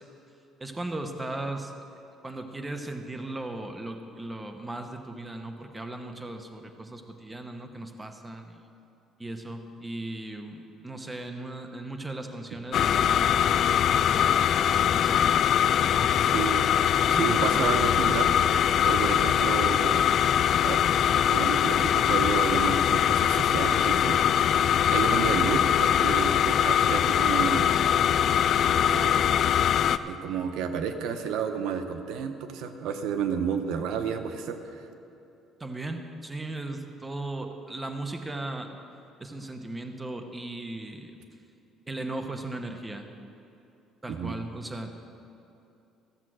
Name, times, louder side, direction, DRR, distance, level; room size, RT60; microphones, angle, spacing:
voice 1, 0.6-1.8 2.2-8.6 9.2-13.7 14.0-16.3 17.1-18.2 19.1-19.2 35.6-38.7 39.2-41.2 41.9-43.1 44.0-44.9, right 2 dB, 15° right, 6 dB, 0.8 m, -37 dB
sound 1, 12.7-30.0, left 9 dB, 50° left, 0.3 m, -22 dB
voice 2, 16.2-16.7 17.1-18.3 18.8-20.0 20.6-20.8 21.1-24.2 24.9-27.7 28.9-29.3 30.0-34.8 44.1-44.3, right 7 dB, 80° right, 7 dB, 0.8 m, -31 dB
14.5 x 7.4 x 6.2 m, 2.8 s
cardioid pair, 140°, 0 cm